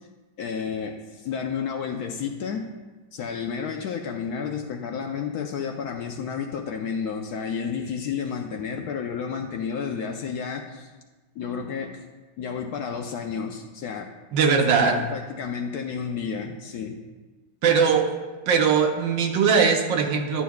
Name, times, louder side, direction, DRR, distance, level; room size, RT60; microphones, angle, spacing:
voice 1, 0.4-2.7 3.1-10.9 11.4-12.0 12.4-14.1 14.4-17.0, left 6 dB, 70° left, 3 dB, 1.0 m, -31 dB
voice 2, 14.3-15.0 17.6-18.2 18.5-20.4, right 6 dB, 80° right, 3 dB, 1.5 m, -20 dB
11.0 x 8.0 x 2.3 m, 1.2 s
omnidirectional pair, 2.0 m